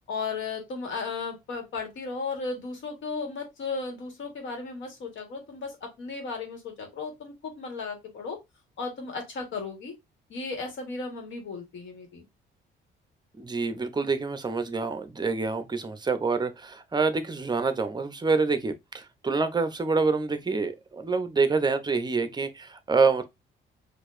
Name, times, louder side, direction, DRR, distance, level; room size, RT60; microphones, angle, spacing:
voice 1, 0.1-8.4 8.8-9.9 10.3-12.2, left 4 dB, 70° left, 1.5 m, -35 dB
voice 2, 13.4-23.2, right 4 dB, 20° right, 0.6 m, -26 dB
4.5 x 2.6 x 2.5 m
cardioid pair, 90°, 20 cm